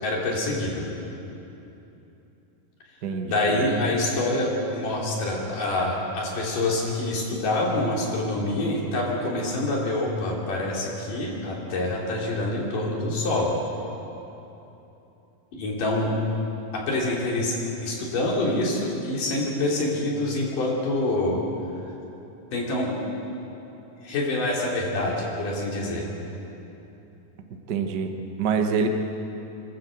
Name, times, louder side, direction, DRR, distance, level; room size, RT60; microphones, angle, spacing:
voice 1, 0.0-0.9 3.2-13.5 15.5-16.2 16.7-17.5 17.8-21.4 22.5-22.9 24.0-26.0, left 2 dB, 70° left, -3 dB, 4.7 m, -26 dB
voice 2, 3.0-3.6 27.7-28.1 28.4-28.9, right 6 dB, 85° right, 4 dB, 0.9 m, -25 dB
26.5 x 12.5 x 7.9 m, 3.0 s
omnidirectional pair, 3.9 m